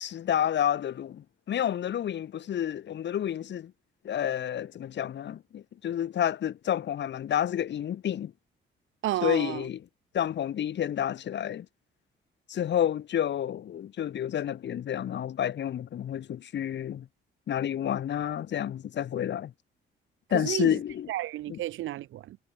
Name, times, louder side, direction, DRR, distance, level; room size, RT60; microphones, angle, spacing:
voice 1, 0.0-3.7 4.0-8.3 9.2-9.8 10.1-11.7 12.5-17.1 17.5-19.5 20.3-21.1 21.5-21.6, left 10 dB, 65° left, 2.3 m, -30 dB
voice 2, 9.0-9.6 20.3-20.7 21.1-22.4, right 14 dB, 80° right, 1.6 m, -31 dB
cardioid pair, 90°, 20 cm